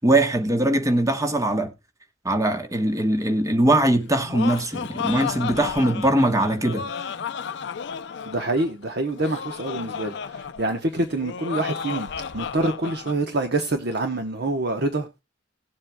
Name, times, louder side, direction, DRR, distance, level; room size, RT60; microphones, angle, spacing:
voice 1, 0.0-1.7 2.2-6.9, right 1 dB, 15° right, 1.1 m, -21 dB
Laughter, 4.0-13.2, left 6 dB, 60° left, 0.5 m, -33 dB
voice 2, 8.3-12.1 12.3-15.1, right 2 dB, 55° right, 0.9 m, -26 dB
18.5 x 7.4 x 2.2 m
head